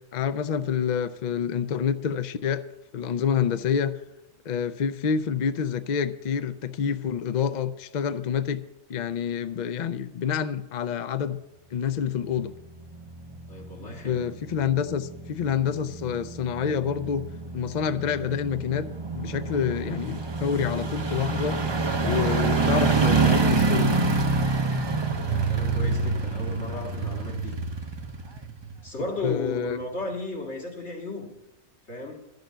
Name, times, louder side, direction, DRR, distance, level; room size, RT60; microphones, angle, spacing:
voice 1, 0.1-2.6 2.9-4.0 4.5-8.6 8.9-11.4 11.7-12.5 13.8-17.3 17.5-18.9 19.1-21.6 22.0-23.9 29.2-29.8, left 7 dB, 55° left, 12 dB, 0.5 m, -27 dB
sound 1, 12.5-29.1 29.5-29.6, right 4 dB, 30° right, 0.6 m, -27 dB
voice 2, 13.5-14.2 25.2-27.6 28.8-31.3 31.9-32.2, left 2 dB, 75° left, 0 dB, 2.4 m, -35 dB
11.5 x 6.7 x 7.8 m, 0.94 s
omnidirectional pair, 1.2 m